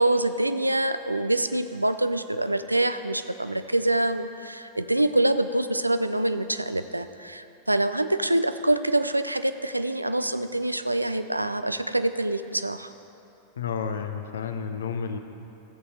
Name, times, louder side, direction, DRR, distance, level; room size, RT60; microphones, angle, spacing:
voice 1, 0.0-12.9, right 1 dB, 85° right, 11 dB, 0.4 m, -25 dB
voice 2, 13.6-15.2, left 6 dB, 65° left, 7 dB, 0.7 m, -31 dB
14.0 x 8.2 x 4.1 m, 2.8 s
figure-of-eight pair, 90°, 0 cm